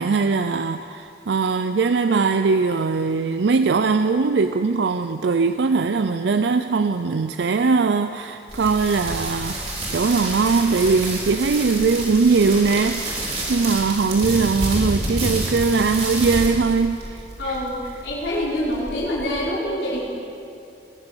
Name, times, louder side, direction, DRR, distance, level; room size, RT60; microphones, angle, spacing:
voice 1, 0.0-13.2 13.5-17.6, right 4 dB, 75° right, 9 dB, 0.5 m, -20 dB
sound 1, 8.5-19.5, right 1 dB, 35° right, 3.7 m, -29 dB
voice 2, 17.4-17.8 18.0-20.1, left 1 dB, 85° left, -6 dB, 4.6 m, -25 dB
20.0 x 7.6 x 9.0 m, 2.7 s
head